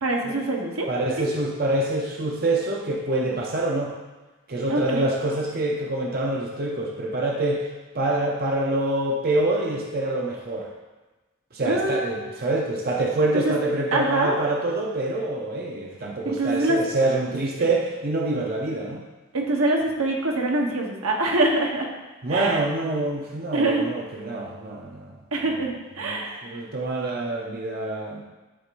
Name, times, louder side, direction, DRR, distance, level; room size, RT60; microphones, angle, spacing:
voice 1, 0.0-0.9 4.7-5.1 11.6-12.2 13.3-13.5 13.9-14.4 16.2-16.8 17.6-17.7 19.3-21.9 22.3-22.6 23.5-23.9 25.3-26.6, right 2 dB, 80° right, 0 dB, 1.1 m, -24 dB
voice 2, 0.9-3.9 4.5-7.7 7.9-10.7 11.5-19.0 22.2-25.2 25.5-25.6 26.0-28.2, right 2 dB, 45° right, -1 dB, 0.7 m, -26 dB
11.0 x 4.7 x 2.6 m, 1.2 s
head